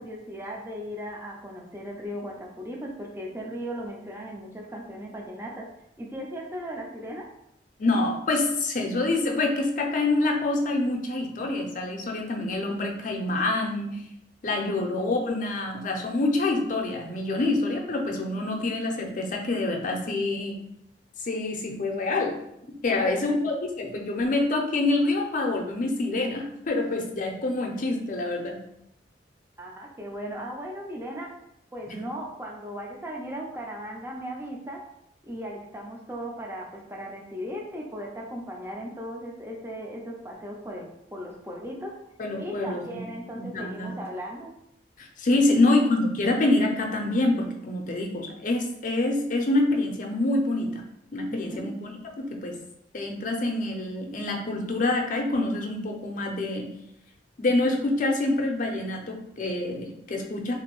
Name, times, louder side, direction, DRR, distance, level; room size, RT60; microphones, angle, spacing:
voice 1, 0.0-5.7 6.0-7.3 14.6-14.8 22.9-23.5 29.6-31.3 31.7-34.8 35.2-42.0 42.4-44.5 45.5-45.8 51.3-51.8, equal, 15° right, -1 dB, 0.5 m, -37 dB
voice 2, 7.8-14.0 14.4-20.6 21.3-22.4 22.8-28.6 31.9-32.0 42.2-43.1 43.4-43.9 45.0-50.8 51.1-52.5 52.9-56.7 57.4-60.5, left 2 dB, 45° left, 2 dB, 0.5 m, -26 dB
2.9 x 2.6 x 3.0 m, 0.78 s
head